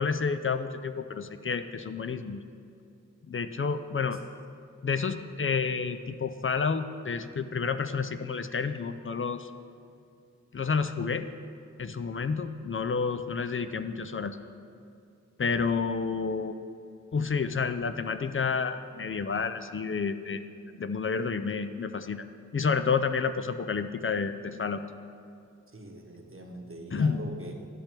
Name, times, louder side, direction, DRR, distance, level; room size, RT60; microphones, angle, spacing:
voice 1, 0.0-2.4 3.3-4.2 4.8-9.5 10.5-11.3 11.8-14.4 15.4-16.5 17.1-20.4 20.7-22.2 22.5-24.8 26.9-27.2, left 5 dB, 40° left, 10 dB, 0.4 m, -30 dB
voice 2, 25.7-27.5, right 2 dB, 40° right, 0 dB, 1.0 m, -42 dB
12.0 x 6.5 x 3.0 m, 2.6 s
wide cardioid pair, 40°, 32 cm